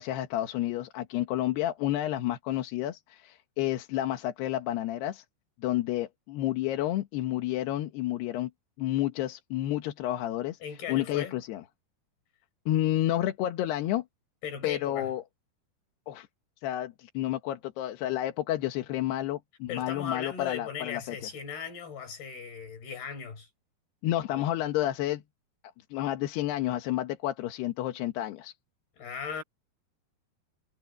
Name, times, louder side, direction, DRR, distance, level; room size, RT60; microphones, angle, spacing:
voice 1, 0.0-5.2 5.6-8.5 8.8-10.6 10.9-11.6 12.7-14.0 14.6-15.2 16.1-16.3 16.6-21.2 24.0-25.2 25.9-28.5, left 13 dB, 90° left, 3.4 m, -30 dB
voice 2, 10.6-11.4 14.4-15.1 19.7-23.5 24.3-24.4 29.0-29.4, left 7 dB, 75° left, 6.4 m, -37 dB
omnidirectional pair, 4.6 m